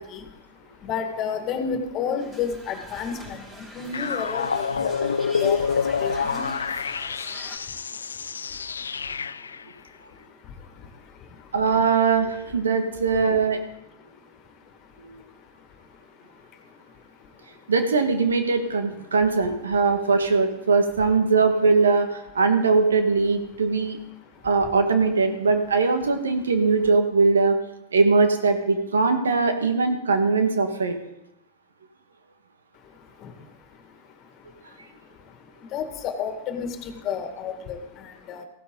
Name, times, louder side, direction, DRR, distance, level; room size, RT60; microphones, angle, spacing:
voice 1, 0.0-11.6 13.9-17.7 19.8-19.9 24.2-24.5 32.7-38.4, left 6 dB, 40° left, 6 dB, 2.0 m, -35 dB
sound 1, 2.2-7.6, right 1 dB, 20° right, 5.0 m, -43 dB
sound 2, 3.9-9.6, left 6 dB, 85° left, 0.4 m, -27 dB
voice 2, 11.5-13.6 15.1-15.2 17.7-24.0 24.4-27.6 27.9-31.0, right 4 dB, 85° right, 6 dB, 1.7 m, -21 dB
15.5 x 12.0 x 3.9 m, 0.88 s
hypercardioid pair, 100°, 0 cm